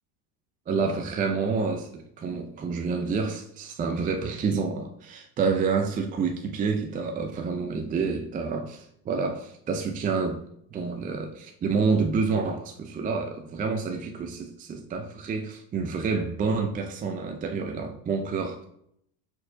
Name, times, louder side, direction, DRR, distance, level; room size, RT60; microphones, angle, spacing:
voice 1, 0.7-10.4 10.7-18.7, right 5 dB, 20° right, 0.5 m, -28 dB
4.5 x 4.3 x 4.9 m
supercardioid pair, 115°, 46 cm